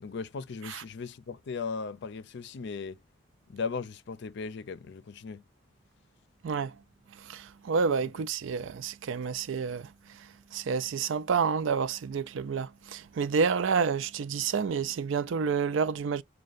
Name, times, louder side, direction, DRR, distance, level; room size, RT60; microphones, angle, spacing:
voice 1, 0.0-3.0 3.5-5.4, left 5 dB, 60° left, 0.5 m, -37 dB
voice 2, 6.4-6.8 7.1-16.2, right 5 dB, 75° right, 0.4 m, -29 dB
6.4 x 2.2 x 2.4 m
head